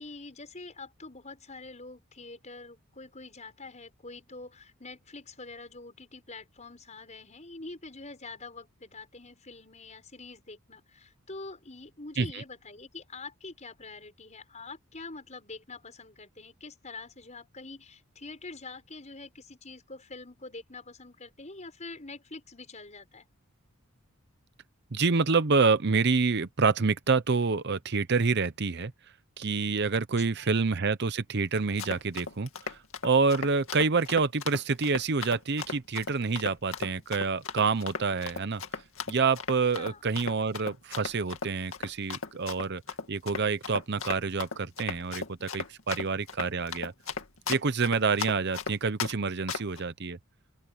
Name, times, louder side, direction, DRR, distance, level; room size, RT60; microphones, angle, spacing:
voice 1, 0.0-23.3 30.2-30.5 39.8-40.0 45.9-46.2, left 3 dB, 30° left, 6.1 m, -45 dB
voice 2, 24.9-28.9 29.4-38.6 39.1-42.8 43.1-46.9 47.5-50.2, right 4 dB, 50° right, 0.7 m, -27 dB
Run, 31.6-49.1 49.5-49.8, left 5 dB, 65° left, 2.3 m, -36 dB
open air
head